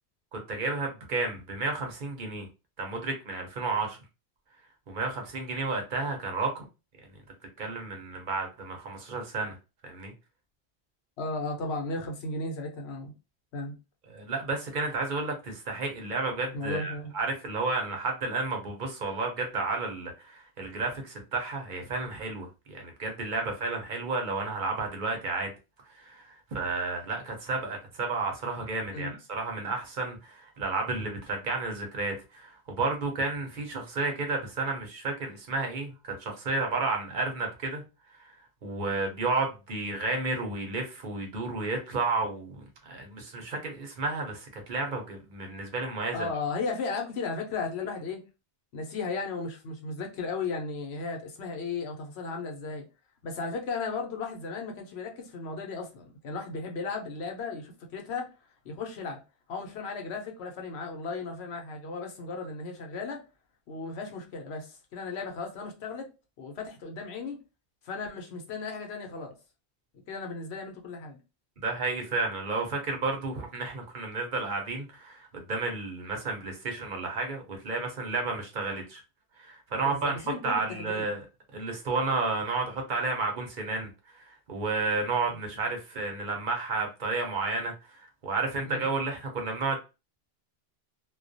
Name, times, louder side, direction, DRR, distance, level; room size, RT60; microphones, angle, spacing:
voice 1, 0.3-2.5 2.8-4.0 4.9-6.6 7.6-9.6 9.8-10.1 14.1-25.5 25.9-37.8 38.2-38.3 38.6-46.3 71.6-79.0 79.4-81.2 81.5-89.8, right 3 dB, 55° right, 0.7 m, -32 dB
voice 2, 11.2-13.1 13.5-13.7 16.5-17.1 28.9-29.1 46.1-48.2 48.7-52.8 53.2-58.3 58.6-59.2 59.5-63.2 63.7-66.1 66.4-67.4 67.8-69.3 70.1-71.2 79.8-81.1 85.3-85.4 88.6-88.9, left 4 dB, 85° left, 0.9 m, -35 dB
2.3 x 2.2 x 2.5 m
omnidirectional pair, 1.1 m